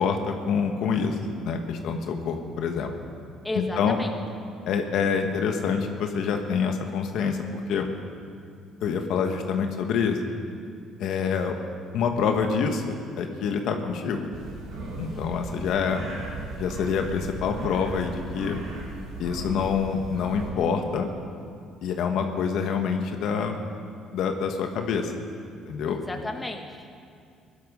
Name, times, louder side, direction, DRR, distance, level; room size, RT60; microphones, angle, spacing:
voice 1, 0.0-2.9 3.5-4.0 4.7-7.9 8.8-10.2 11.0-11.5 11.9-14.3 15.0-16.0 16.6-18.6 19.2-21.1 21.8-23.6 24.1-25.1 25.7-26.0, left 6 dB, 70° left, 4 dB, 1.4 m, -26 dB
voice 2, 3.4-4.1 15.1-15.6 25.9-26.9, left 2 dB, 15° left, 4 dB, 1.4 m, -34 dB
sound 1, 14.3-20.5, right 2 dB, 90° right, 4.2 m, -37 dB
18.0 x 12.0 x 5.4 m, 2.4 s
cardioid pair, 95°, 0 cm